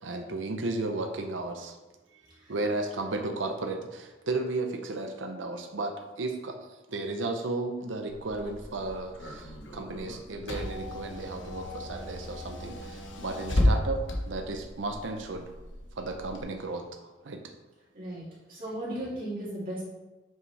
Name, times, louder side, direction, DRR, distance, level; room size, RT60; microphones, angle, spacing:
voice 1, 0.0-1.8 2.5-6.6 6.9-15.5 16.0-16.8 17.2-17.4, right 2 dB, 85° right, 5 dB, 0.7 m, -34 dB
Car / Engine, 8.1-16.4, left 1 dB, 85° left, 1.1 m, -33 dB
voice 2, 18.5-19.8, right 1 dB, 50° right, -8 dB, 2.1 m, -36 dB
7.6 x 5.4 x 3.3 m, 1.1 s
head